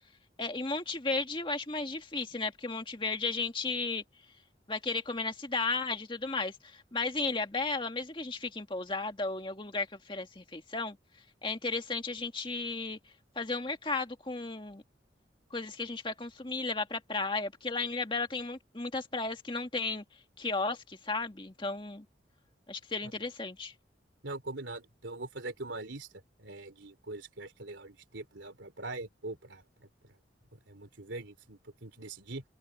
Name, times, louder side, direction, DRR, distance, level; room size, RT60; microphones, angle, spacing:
voice 1, 0.4-4.0 4.7-11.0 11.4-13.0 13.4-14.8 15.5-20.0 20.4-22.1 22.7-23.7, left 3 dB, 25° left, 2.0 m, -34 dB
voice 2, 24.2-26.1 26.4-29.9 30.7-32.4, right 2 dB, 90° right, 3.2 m, -42 dB
open air
head